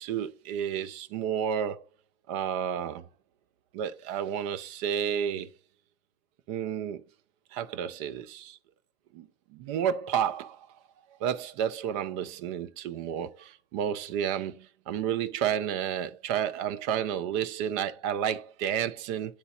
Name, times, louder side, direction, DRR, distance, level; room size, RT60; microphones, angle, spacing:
voice 1, 0.0-1.8 2.3-3.1 3.7-5.5 6.5-7.0 7.5-8.6 9.1-10.7 11.2-19.4, right 9 dB, 30° right, 0.6 m, -31 dB
10.5 x 4.0 x 2.4 m
hypercardioid pair, 120°, 31 cm